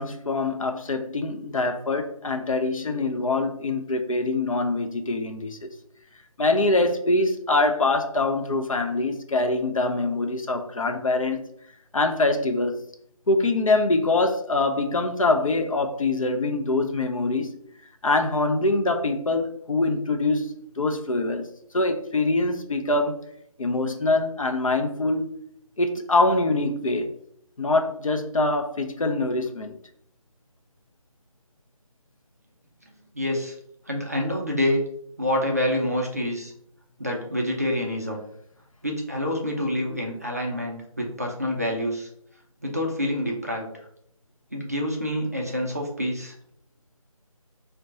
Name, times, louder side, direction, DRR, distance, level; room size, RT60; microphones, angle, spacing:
voice 1, 0.0-5.7 6.4-11.4 11.9-12.8 13.3-17.5 18.0-21.4 21.7-23.2 23.6-25.3 25.8-27.1 27.6-29.8, left 2 dB, 65° left, 0.5 m, -24 dB
voice 2, 33.1-33.5 33.9-34.8 35.2-36.5 37.0-38.2 38.8-42.1 42.6-43.9 44.5-46.3, left 1 dB, 25° right, 0.4 m, -27 dB
4.6 x 2.2 x 2.6 m
figure-of-eight pair, 165°, 18 cm